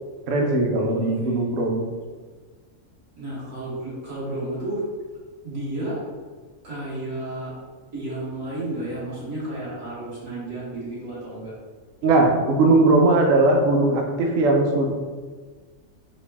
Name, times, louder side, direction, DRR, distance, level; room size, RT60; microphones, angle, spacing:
voice 1, 0.3-1.8 12.0-14.9, right 2 dB, 60° right, 1 dB, 0.6 m, -19 dB
voice 2, 1.0-1.5 3.2-4.8 5.4-6.0 6.6-7.6 7.9-11.5, right 1 dB, 85° right, -8 dB, 1.8 m, -32 dB
4.0 x 2.2 x 3.4 m, 1.4 s
omnidirectional pair, 1.4 m